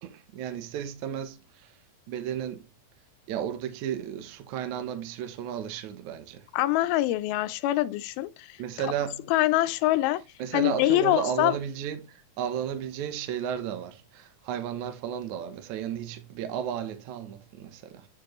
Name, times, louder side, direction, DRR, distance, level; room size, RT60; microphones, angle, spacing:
voice 1, 0.0-1.7 2.1-2.7 3.3-6.5 8.6-9.3 10.4-18.1, right 9 dB, 70° right, 1.9 m, -34 dB
voice 2, 6.5-8.6 8.8-8.9 9.3-10.2 10.5-11.6, left 16 dB, 85° left, 2.5 m, -24 dB
9.7 x 4.5 x 3.0 m
omnidirectional pair, 4.3 m